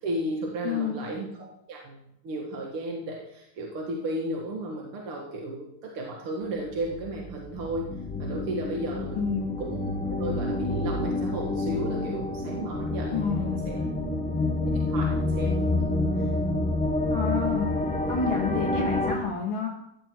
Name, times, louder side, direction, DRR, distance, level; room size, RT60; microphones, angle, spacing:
voice 1, 0.0-7.9 8.2-9.3 9.6-9.8 10.2-13.9 14.9-15.9, right 1 dB, 80° right, -1 dB, 2.7 m, -34 dB
voice 2, 0.6-1.0 9.1-9.5 13.1-14.2 17.1-17.7 18.1-19.7, left 5 dB, 65° left, -1 dB, 2.7 m, -30 dB
sound 1, 6.6-19.2, left 2 dB, 5° left, 0.7 m, -28 dB
15.5 x 9.9 x 4.6 m, 0.79 s
omnidirectional pair, 2.4 m